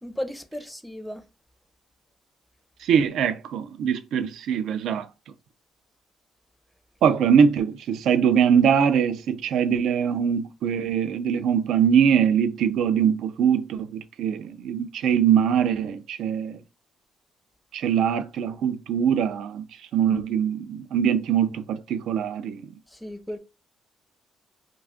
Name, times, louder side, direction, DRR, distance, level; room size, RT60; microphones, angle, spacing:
voice 1, 0.0-1.3 22.9-23.4, equal, ahead, 0.5 m, -35 dB
voice 2, 2.8-5.1 7.0-16.6 17.7-19.6 19.9-22.6, right 8 dB, 80° right, 0.3 m, -22 dB
2.4 x 2.3 x 3.5 m
cardioid pair, 90°, 0 cm